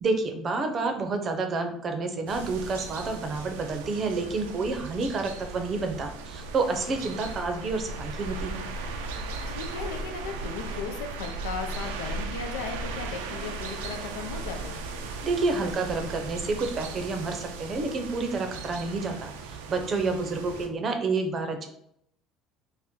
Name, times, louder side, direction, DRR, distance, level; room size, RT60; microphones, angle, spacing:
voice 1, 0.0-8.6 15.2-21.7, right 3 dB, 45° right, 6 dB, 0.6 m, -29 dB
sound 1, 2.3-20.7, right 3 dB, 85° right, 0.3 m, -37 dB
voice 2, 7.0-7.4 9.5-14.8 20.0-20.5, left 5 dB, 85° left, 4 dB, 0.3 m, -37 dB
2.6 x 2.1 x 3.6 m, 0.71 s
hypercardioid pair, 75°, 0 cm